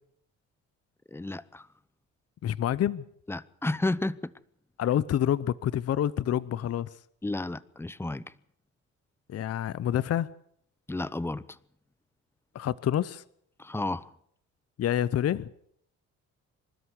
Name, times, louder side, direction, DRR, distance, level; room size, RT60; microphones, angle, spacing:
voice 1, 1.1-1.7 3.3-4.3 7.2-8.2 10.9-11.6 13.6-14.1, left 2 dB, 10° left, 0.8 m, -32 dB
voice 2, 2.4-3.1 4.8-6.9 9.3-10.3 12.5-13.2 14.8-15.5, left 10 dB, 55° left, 0.7 m, -27 dB
26.0 x 13.0 x 8.2 m
cardioid pair, 90°, 30 cm